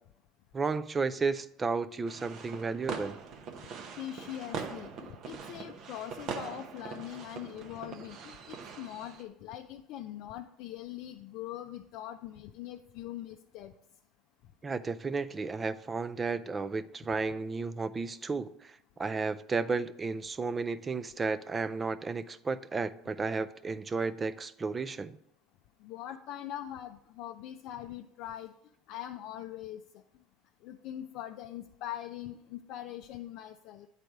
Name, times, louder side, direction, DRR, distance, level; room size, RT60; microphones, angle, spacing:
voice 1, 0.5-3.2 14.6-25.2, right 4 dB, 25° right, 0.4 m, -33 dB
sound 1, 2.1-9.3, right 5 dB, 55° right, 0.8 m, -42 dB
voice 2, 4.0-13.7 25.8-28.5 28.9-30.0 30.6-33.9, left 12 dB, 65° left, 0.4 m, -42 dB
9.1 x 4.1 x 4.6 m
supercardioid pair, 105°, 0 cm